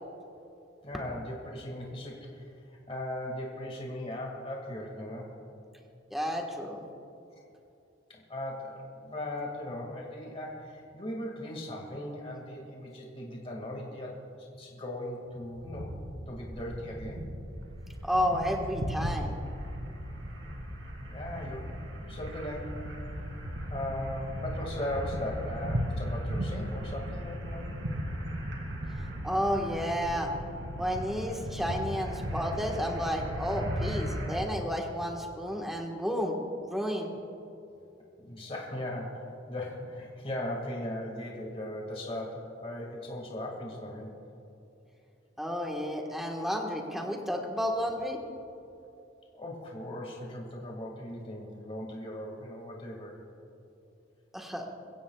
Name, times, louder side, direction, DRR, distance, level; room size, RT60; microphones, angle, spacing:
voice 1, 0.8-5.4 7.3-7.4 8.1-14.2 14.5-15.9 16.3-17.3 21.1-21.7 22.0-22.9 23.7-27.8 38.2-44.1 49.3-53.2, left 1 dB, 30° left, -1 dB, 2.1 m, -38 dB
voice 2, 6.1-6.8 18.0-19.4 29.2-30.3 30.8-36.4 36.7-37.1 45.4-48.2 54.3-54.7, equal, ahead, 0 dB, 1.4 m, -31 dB
sound 1, 15.3-34.4, equal, 85° right, 2.6 m, -36 dB
22.5 x 16.5 x 2.4 m, 2.7 s
head